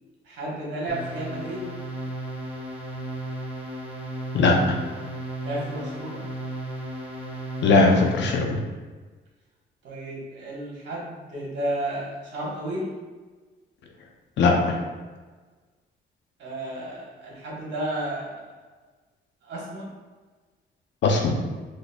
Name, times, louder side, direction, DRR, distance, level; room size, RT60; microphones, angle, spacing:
voice 1, 0.2-1.7 5.4-6.2 9.8-12.9 16.4-18.5 19.4-19.9, right 1 dB, 65° right, -4 dB, 1.4 m, -32 dB
sound 1, 0.9-8.4, right 1 dB, 5° right, 0.9 m, -35 dB
voice 2, 4.3-4.8 7.6-8.6 14.4-14.8 21.0-21.3, left 3 dB, 65° left, 2 dB, 0.6 m, -19 dB
3.9 x 3.1 x 2.3 m, 1.3 s
cardioid pair, 90°, 20 cm